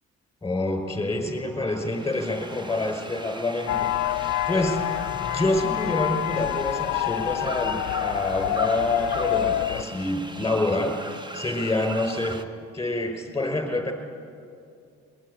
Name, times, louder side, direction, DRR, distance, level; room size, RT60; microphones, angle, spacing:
voice 1, 0.4-4.9 5.2-12.4 12.7-13.9, left 2 dB, 10° left, 5 dB, 5.1 m, -27 dB
sound 1, 1.8-12.4, right 2 dB, 15° right, 1.0 m, -39 dB
sound 2, 3.7-9.8, left 13 dB, 70° left, 0.7 m, -27 dB
22.0 x 20.5 x 9.9 m, 2.4 s
cardioid pair, 90°, 30 cm